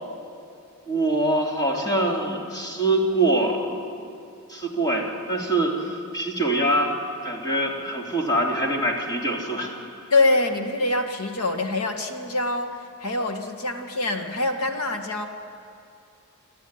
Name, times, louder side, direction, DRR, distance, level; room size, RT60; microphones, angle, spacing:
voice 1, 0.9-3.6 4.5-6.9 7.2-9.8, right 1 dB, 20° left, -1 dB, 3.3 m, -24 dB
voice 2, 10.1-15.2, left 2 dB, 90° left, 5 dB, 2.1 m, -24 dB
28.0 x 12.5 x 9.8 m, 2.6 s
head